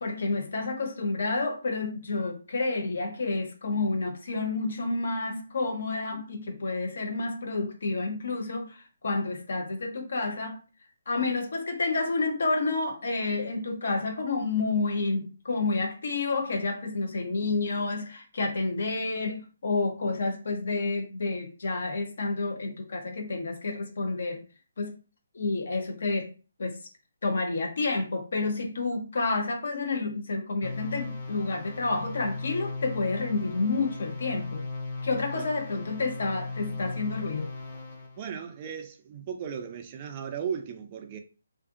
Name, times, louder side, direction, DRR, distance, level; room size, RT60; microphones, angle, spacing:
voice 1, 0.0-10.6 11.1-24.4 24.8-24.9 25.3-26.3 26.6-26.8 27.2-34.7 35.0-37.5, left 3 dB, 65° left, 0.7 m, -29 dB
sound 1, 30.6-38.2, left 3 dB, 35° left, 0.8 m, -37 dB
voice 2, 38.2-41.2, right 7 dB, 30° right, 0.4 m, -36 dB
2.5 x 2.5 x 2.5 m
hypercardioid pair, 160°, 0 cm